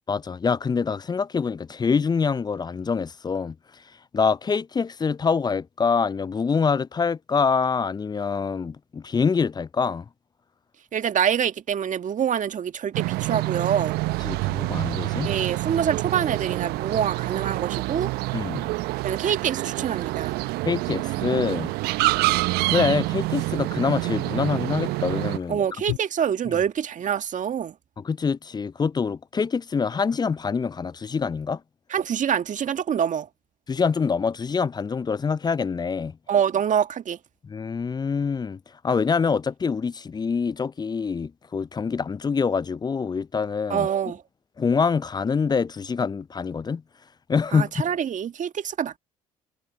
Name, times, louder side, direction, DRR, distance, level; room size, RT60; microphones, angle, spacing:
voice 1, 0.1-3.5 4.1-10.1 14.2-15.3 18.3-18.7 20.6-21.7 22.7-25.6 28.0-31.6 33.7-36.2 37.4-43.9 44.6-46.8 47.3-47.8, left 5 dB, 25° left, 0.5 m, -25 dB
voice 2, 10.9-14.0 15.3-18.1 19.0-20.3 25.5-27.7 31.9-33.3 36.3-37.2 43.7-44.2 47.5-49.0, right 8 dB, 45° right, 1.9 m, -25 dB
sound 1, 12.3-12.4 15.8-26.0, left 25 dB, 70° left, 2.4 m, -45 dB
sound 2, 12.9-25.4, right 21 dB, 65° right, 1.0 m, -27 dB
figure-of-eight pair, 50°, 18 cm